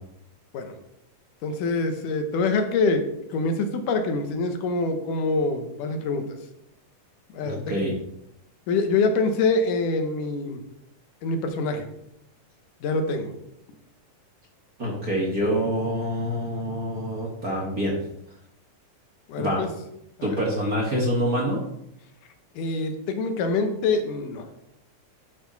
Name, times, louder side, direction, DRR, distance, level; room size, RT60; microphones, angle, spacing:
voice 1, 1.4-3.0 3.3-6.2 7.3-7.8 8.7-10.6 11.2-11.9 12.8-13.3 19.3-19.7 20.2-20.4 22.6-24.6, left 3 dB, 80° left, 6 dB, 2.6 m, -25 dB
voice 2, 7.4-7.9 14.8-18.0 19.4-19.6 20.2-21.6, equal, 40° right, -3 dB, 1.5 m, -26 dB
11.5 x 4.7 x 5.2 m, 0.80 s
omnidirectional pair, 3.7 m